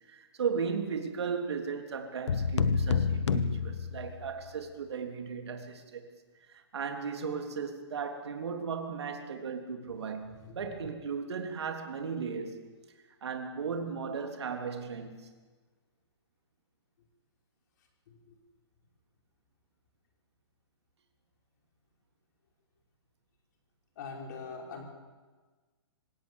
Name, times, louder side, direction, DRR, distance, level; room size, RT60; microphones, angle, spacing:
voice 1, 0.1-6.1 6.5-12.6 13.2-15.3, right 6 dB, 65° right, 3.4 m, -36 dB
sound 1, 2.3-4.5, left 5 dB, 75° left, 1.4 m, -29 dB
voice 2, 18.1-18.4 24.0-24.8, left 5 dB, 40° left, 5.4 m, -43 dB
26.0 x 17.5 x 7.2 m
hypercardioid pair, 170°, 15 cm